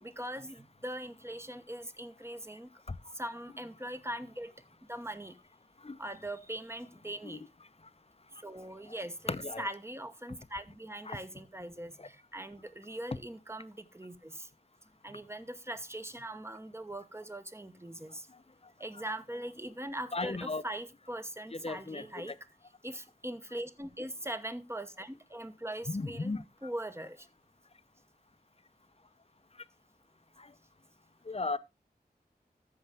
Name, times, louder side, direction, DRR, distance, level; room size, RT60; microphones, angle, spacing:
voice 1, 0.0-2.7 3.1-4.5 4.9-5.3 6.0-7.4 8.4-14.5 15.0-18.2 18.8-22.3 22.8-26.3 26.6-27.2, right 1 dB, 15° right, 1.0 m, -41 dB
voice 2, 9.3-9.7 11.1-11.2 12.0-12.1 20.1-20.6 21.5-22.3 25.9-26.4 30.4-30.5 31.3-31.6, left 3 dB, 40° left, 0.7 m, -36 dB
13.5 x 5.5 x 3.5 m
wide cardioid pair, 45°, 17 cm